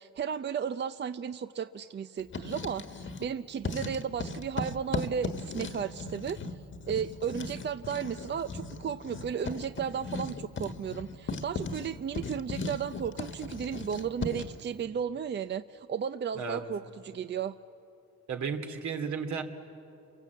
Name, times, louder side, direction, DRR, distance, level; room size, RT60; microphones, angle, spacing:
voice 1, 0.0-6.4 6.9-17.5, right 7 dB, 35° right, 12 dB, 0.5 m, -34 dB
Writing, 2.2-3.3 3.6-14.6, left 3 dB, 40° left, 1.5 m, -38 dB
voice 2, 18.3-19.4, right 6 dB, 70° right, 4 dB, 2.5 m, -33 dB
29.0 x 23.5 x 8.3 m, 2.8 s
cardioid pair, 90°, 30 cm